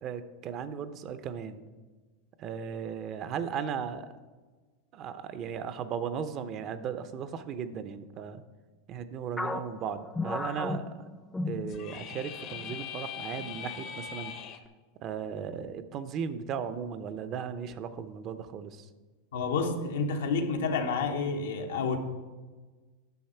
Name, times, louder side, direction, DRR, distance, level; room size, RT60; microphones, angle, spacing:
voice 1, 0.0-1.6 2.4-4.1 4.9-8.4 8.9-10.9 11.4-14.3 15.0-18.9, right 7 dB, 45° right, 12 dB, 0.6 m, -36 dB
sound 1, 9.4-12.2 12.5-12.8 13.4-13.9, left 2 dB, 10° left, 0.5 m, -35 dB
sound 2, 11.7-14.6, left 9 dB, 50° left, 0.8 m, -41 dB
voice 2, 19.3-22.0, left 4 dB, 85° left, 4 dB, 1.1 m, -29 dB
9.3 x 6.3 x 4.4 m, 1.3 s
hypercardioid pair, 110°, 0 cm